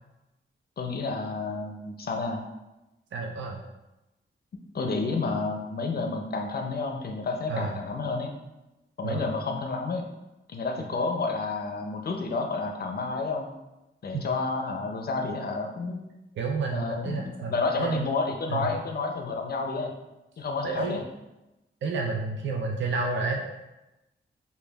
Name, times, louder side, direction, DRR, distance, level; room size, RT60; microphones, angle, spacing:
voice 1, 0.8-2.4 4.7-8.3 9.0-10.1 10.5-13.5 14.0-16.0 16.7-19.9 20.4-21.0, left 3 dB, 50° left, 3 dB, 0.5 m, -30 dB
voice 2, 3.1-3.6 7.5-7.8 9.0-9.3 14.1-14.2 16.4-18.1 18.5-18.7 20.6-21.0 21.8-23.5, right 4 dB, 60° right, 1 dB, 0.4 m, -30 dB
5.0 x 2.2 x 2.2 m, 0.99 s
wide cardioid pair, 105°, 21 cm